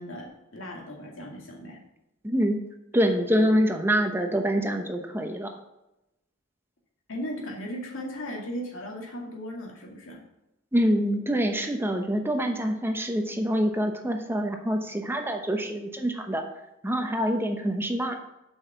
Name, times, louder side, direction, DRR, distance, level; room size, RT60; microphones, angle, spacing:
voice 1, 0.0-1.8 7.1-10.2, equal, 85° left, 0 dB, 2.4 m, -37 dB
voice 2, 2.2-2.6 2.9-5.5 10.7-16.4 16.8-18.2, equal, 10° right, 4 dB, 0.9 m, -25 dB
7.7 x 5.6 x 6.9 m, 0.90 s
head